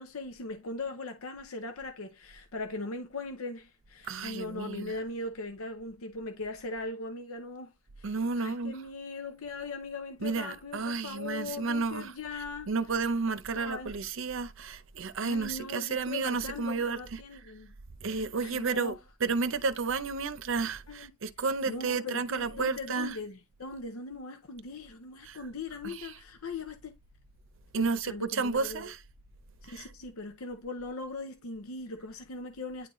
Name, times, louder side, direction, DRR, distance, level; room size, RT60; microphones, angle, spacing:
voice 1, 0.0-7.7 8.0-12.7 13.5-14.0 15.2-17.7 18.1-19.0 20.9-21.1 21.7-27.0 27.8-28.8 29.6-32.9, left 3 dB, 85° left, 0.7 m, -40 dB
voice 2, 4.0-4.9 8.0-8.8 10.2-12.1 12.7-17.2 18.0-23.2 25.2-25.4 25.8-26.1 27.7-29.0 29.6-29.9, right 4 dB, 65° right, 0.6 m, -32 dB
9.7 x 3.8 x 3.1 m
head